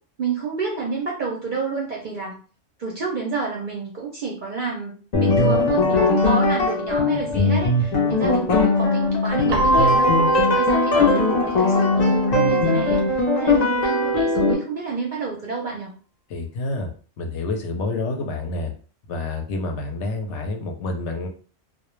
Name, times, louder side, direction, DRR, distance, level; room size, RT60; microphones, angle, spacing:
voice 1, 0.2-2.4 2.8-15.9, right 4 dB, 55° right, -2 dB, 0.5 m, -29 dB
sound 1, 5.1-14.5, left 2 dB, 55° left, 0.4 m, -20 dB
Keyboard (musical), 9.5-12.2, equal, 90° right, 1.0 m, -23 dB
voice 2, 16.3-16.9 17.2-18.7 19.1-21.3, left 2 dB, 70° left, 2 dB, 0.8 m, -28 dB
2.2 x 2.1 x 3.0 m, 0.40 s
omnidirectional pair, 1.3 m